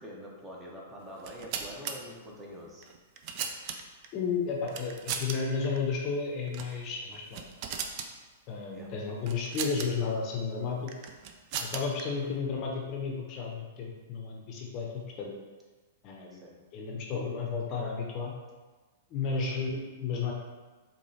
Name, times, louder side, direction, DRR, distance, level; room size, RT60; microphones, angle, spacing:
voice 1, 0.0-2.8 8.7-8.9 12.1-12.3 16.3-16.5 19.3-19.6, equal, 15° right, -3 dB, 0.8 m, -45 dB
sound 1, 1.1-1.9 2.8-4.1 4.7-5.4 5.6-5.8 6.5-6.8 7.1-8.1 9.3-9.9 10.9-12.0, right 7 dB, 45° right, 0.4 m, -37 dB
voice 2, 4.1-7.4 8.5-10.9 11.6-15.3 16.0-18.3 19.1-20.3, left 5 dB, 40° left, -1 dB, 0.6 m, -33 dB
4.8 x 2.3 x 2.7 m, 1.3 s
hypercardioid pair, 110°, 0 cm